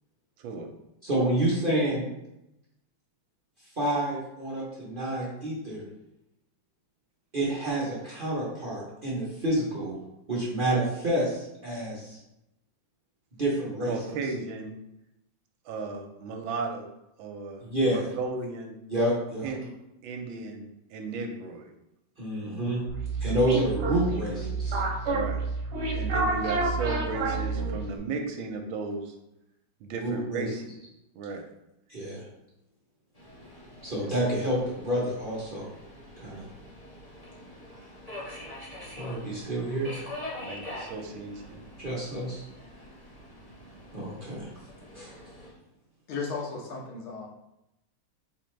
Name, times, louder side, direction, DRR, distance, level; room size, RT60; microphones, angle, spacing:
voice 1, 1.0-2.0 3.8-5.8 7.3-9.9 10.3-12.2 13.4-13.9 17.6-18.1 18.9-19.5 22.2-22.8 23.2-24.8 30.0-30.5 31.9-32.2 33.8-35.7 36.2-36.5 39.0-39.9 41.8-42.4 43.9-44.5 44.9-45.1, right 1 dB, 40° right, -7 dB, 0.8 m, -28 dB
voice 2, 13.8-14.7 15.7-16.9 17.2-18.7 19.4-19.7 20.0-21.7 25.1-25.4 25.9-29.1 29.8-30.7 31.2-31.4 40.4-41.6, right 4 dB, 80° right, 4 dB, 1.3 m, -35 dB
sound 1, 22.9-28.0, right 3 dB, 60° right, 1.3 m, -29 dB
Subway metro underground, 33.1-45.5, left 1 dB, 20° left, 1.2 m, -44 dB
voice 3, 46.1-47.3, left 4 dB, 85° left, -1 dB, 1.8 m, -35 dB
4.2 x 3.9 x 3.2 m, 0.87 s
omnidirectional pair, 2.2 m